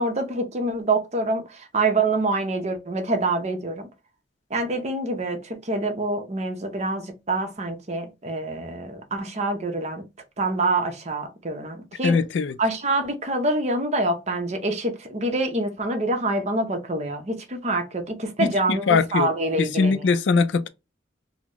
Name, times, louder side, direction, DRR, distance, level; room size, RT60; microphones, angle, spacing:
voice 1, 0.0-3.9 4.5-10.0 10.4-12.2 12.6-20.1, right 2 dB, 40° right, 0.7 m, -26 dB
voice 2, 12.0-12.6 18.4-18.5 18.9-19.3 19.6-20.7, left 4 dB, 80° left, 0.4 m, -21 dB
3.9 x 2.1 x 2.9 m
head